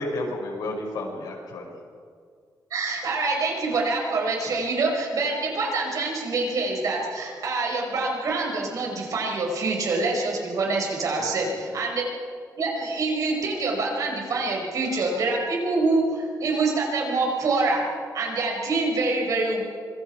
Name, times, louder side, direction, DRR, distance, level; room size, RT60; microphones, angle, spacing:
voice 1, 0.0-1.7 11.2-11.5, left 1 dB, 75° left, 0 dB, 5.6 m, -32 dB
voice 2, 2.7-12.0 12.6-17.9 18.1-19.6, right 3 dB, 55° right, -1 dB, 5.4 m, -25 dB
25.5 x 22.5 x 4.7 m, 2.1 s
wide cardioid pair, 175°, 7 cm